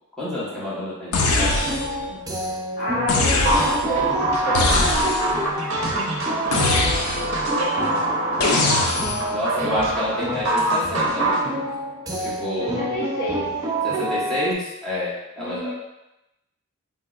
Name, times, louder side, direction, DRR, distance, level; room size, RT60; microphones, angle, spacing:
voice 1, 0.2-1.7 2.1-2.2 9.3-11.5 12.2-12.8 13.8-15.7, left 1 dB, 5° left, -11 dB, 1.1 m, -29 dB
sound 1, 1.1-2.1 3.1-4.0 4.5-5.4 6.5-7.4 8.4-9.3, left 2 dB, 85° left, 0.5 m, -22 dB
sound 2, 1.2-14.5, right 1 dB, 15° right, 0.4 m, -29 dB
voice 2, 2.8-5.4 6.3-6.7 7.6-8.5 10.0-10.2 12.6-13.5 15.4-15.7, equal, 45° left, -8 dB, 0.7 m, -30 dB
sound 3, 3.5-11.4, right 1 dB, 60° right, 0.6 m, -25 dB
3.7 x 2.9 x 2.3 m, 0.92 s
head